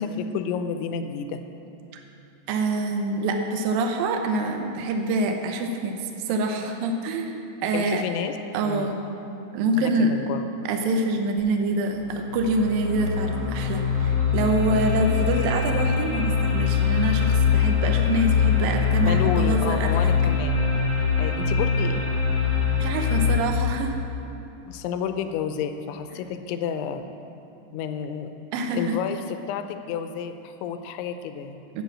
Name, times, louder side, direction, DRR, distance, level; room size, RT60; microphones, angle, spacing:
voice 1, 0.2-1.4 7.7-8.4 8.6-9.0 9.7-10.4 19.0-20.7 21.2-22.1 24.7-27.1 27.7-28.3 28.7-31.6, left 7 dB, 85° left, 8 dB, 3.1 m, -30 dB
voice 2, 2.5-7.3 7.6-8.0 8.5-9.0 9.5-10.1 10.7-20.1 22.8-24.0 28.5-29.0 31.7-31.8, right 2 dB, 90° right, 4 dB, 2.0 m, -25 dB
sound 1, 12.0-23.4, left 6 dB, 45° right, 1.5 m, -23 dB
12.5 x 8.5 x 7.4 m, 2.8 s
omnidirectional pair, 5.3 m